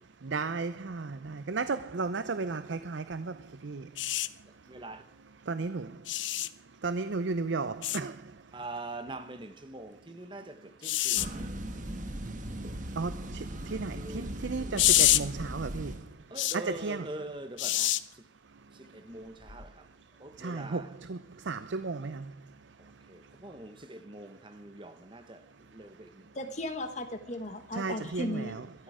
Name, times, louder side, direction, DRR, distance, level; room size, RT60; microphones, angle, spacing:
voice 1, 0.2-4.0 5.4-6.1 6.8-8.5 12.7-16.2 16.5-17.1 18.8-19.0 20.4-22.9 23.5-23.6 27.7-28.7, right 4 dB, 70° right, 0.6 m, -35 dB
sound 1, 4.0-4.3 6.1-6.5 7.8-8.0 10.8-11.3 14.8-15.2 16.4-16.6 17.6-18.0 19.5-19.6, left 14 dB, 75° left, 0.8 m, -26 dB
voice 2, 4.7-5.0 8.5-11.5 13.9-14.9 16.3-18.3 18.7-19.9 20.2-20.9 23.1-26.3 27.9-28.8, right 2 dB, 25° right, 1.1 m, -44 dB
sound 2, 11.2-16.1, right 1 dB, 40° right, 1.4 m, -38 dB
voice 3, 26.3-28.6, left 1 dB, 35° left, 1.5 m, -36 dB
22.0 x 13.0 x 4.9 m
head